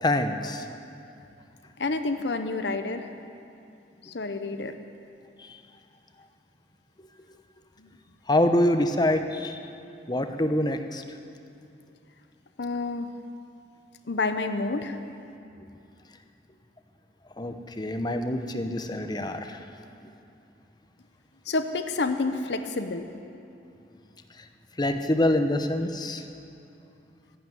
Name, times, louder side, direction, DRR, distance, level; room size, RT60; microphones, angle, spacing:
voice 1, 0.0-0.6 5.4-5.5 8.3-9.6 10.1-11.0 17.4-19.6 24.8-26.2, left 1 dB, 25° left, 7 dB, 0.9 m, -25 dB
voice 2, 1.8-3.1 4.0-4.7 7.8-7.9 12.6-13.1 14.1-15.0 21.5-23.1, left 3 dB, 70° left, 8 dB, 0.8 m, -29 dB
13.5 x 11.5 x 9.2 m, 2.7 s
head